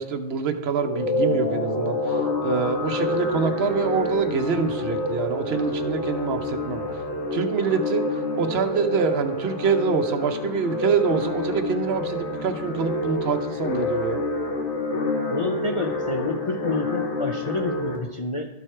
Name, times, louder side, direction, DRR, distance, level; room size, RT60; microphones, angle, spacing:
voice 1, 0.0-6.8 7.3-8.0 8.4-14.2, right 6 dB, 65° right, 8 dB, 0.9 m, -26 dB
sound 1, 0.8-18.0, left 2 dB, 75° left, 1.4 m, -27 dB
voice 2, 15.3-18.5, left 3 dB, 50° left, 3 dB, 0.4 m, -29 dB
12.5 x 4.8 x 4.3 m, 0.97 s
omnidirectional pair, 1.2 m